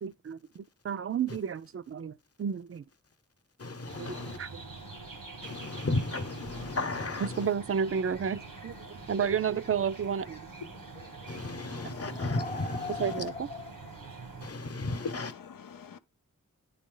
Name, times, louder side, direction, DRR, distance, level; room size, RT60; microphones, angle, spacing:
voice 1, 0.0-2.9 4.0-4.6 7.2-10.5 13.0-13.5, right 7 dB, 45° right, 0.4 m, -32 dB
voice 2, 3.6-4.4 5.4-7.5 11.3-13.3 14.4-15.3, left 2 dB, 45° left, 0.9 m, -34 dB
sound 1, 3.9-14.5, right 3 dB, 85° right, 1.4 m, -45 dB
sound 2, 8.6-8.7 9.0-9.2 10.1-10.3 10.7-14.0, left 3 dB, 25° left, 0.5 m, -41 dB
voice 3, 11.7-12.1 14.9-16.0, left 6 dB, 90° left, 0.6 m, -43 dB
10.0 x 4.1 x 3.8 m
cardioid pair, 45°, 32 cm